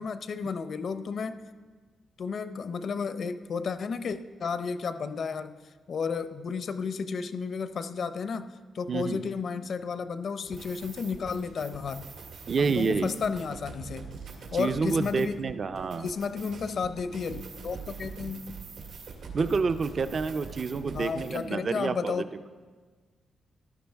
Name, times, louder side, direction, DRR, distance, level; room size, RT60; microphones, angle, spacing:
voice 1, 0.0-1.4 2.2-5.6 5.9-8.5 8.7-12.0 12.6-14.1 14.5-15.3 16.0-18.6 20.9-22.2, left 5 dB, 50° left, 12 dB, 0.5 m, -32 dB
voice 2, 8.9-9.2 12.5-13.1 14.5-16.1 19.3-22.2, right 4 dB, 40° right, 10 dB, 0.4 m, -28 dB
sound 1, 10.4-21.4, right 5 dB, 85° right, 1.9 m, -44 dB
14.5 x 11.5 x 3.4 m, 1.4 s
cardioid pair, 135°, 0 cm